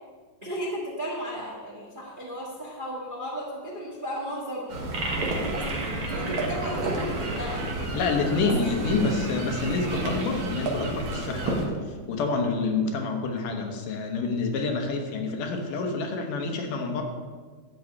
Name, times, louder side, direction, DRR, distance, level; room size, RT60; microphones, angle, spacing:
voice 1, 0.4-5.8 6.1-7.9 8.4-8.9, equal, 25° right, -3 dB, 1.1 m, -35 dB
sound 1, 4.7-11.6, right 2 dB, 50° right, 1.9 m, -30 dB
voice 2, 7.9-17.0, left 3 dB, 85° left, 3 dB, 2.8 m, -28 dB
11.5 x 4.8 x 8.4 m, 1.5 s
omnidirectional pair, 3.6 m